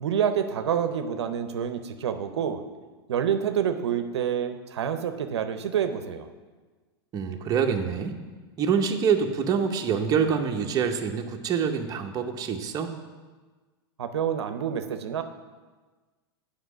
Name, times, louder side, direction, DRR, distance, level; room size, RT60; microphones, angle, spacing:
voice 1, 0.0-2.6 3.1-6.3 14.0-15.2, right 8 dB, 90° right, 9 dB, 0.6 m, -27 dB
voice 2, 7.1-8.2 8.6-13.0, right 6 dB, 25° right, 3 dB, 0.8 m, -26 dB
8.0 x 5.1 x 6.1 m, 1.3 s
hypercardioid pair, 125°, 14 cm